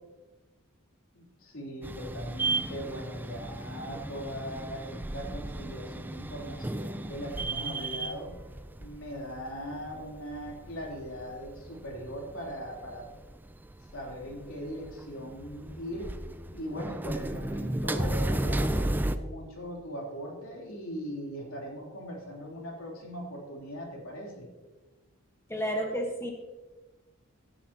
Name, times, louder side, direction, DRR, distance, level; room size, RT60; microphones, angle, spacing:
voice 1, 1.1-8.3 8.8-13.1 13.9-16.1 16.5-24.5, equal, 80° left, -1 dB, 3.3 m, -40 dB
sound 1, 1.8-19.2, right 2 dB, 10° right, 0.3 m, -34 dB
voice 2, 25.5-26.3, equal, 10° left, 1 dB, 1.3 m, -31 dB
16.5 x 10.0 x 2.9 m, 1.2 s
head